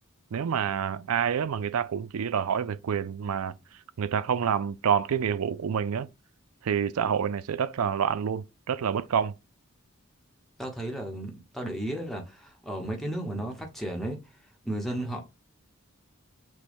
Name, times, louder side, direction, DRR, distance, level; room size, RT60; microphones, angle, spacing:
voice 1, 0.3-3.5 4.0-6.1 6.6-9.3, right 7 dB, 90° right, 0.4 m, -27 dB
voice 2, 10.6-14.2 14.6-15.2, right 1 dB, ahead, 0.9 m, -34 dB
6.2 x 2.3 x 3.5 m
head